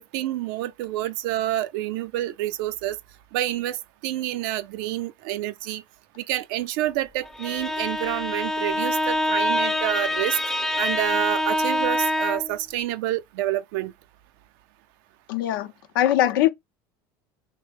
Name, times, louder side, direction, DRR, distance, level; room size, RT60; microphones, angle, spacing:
voice 1, 0.0-3.0 3.3-5.8 6.2-10.4 10.8-13.9, right 14 dB, 80° right, 0.4 m, -28 dB
Bowed string instrument, 7.2-12.6, left 1 dB, 5° left, 0.4 m, -25 dB
voice 2, 15.3-16.5, left 12 dB, 90° left, 0.6 m, -22 dB
3.2 x 2.0 x 3.3 m
supercardioid pair, 105°, 11 cm